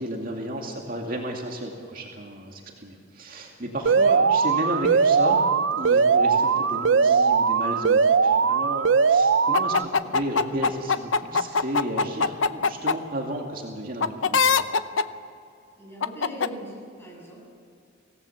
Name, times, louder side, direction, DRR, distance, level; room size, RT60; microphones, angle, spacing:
voice 1, 0.0-5.5 5.7-14.5, right 1 dB, 50° right, 0 dB, 2.4 m, -33 dB
Alarm, 3.9-9.9, right 5 dB, 75° right, 0.6 m, -20 dB
sound 1, 9.5-12.9 14.0-15.0 16.0-16.5, left 5 dB, 85° left, 0.7 m, -21 dB
voice 2, 15.8-17.5, equal, 10° left, -3 dB, 7.4 m, -40 dB
24.5 x 17.5 x 7.2 m, 2.5 s
head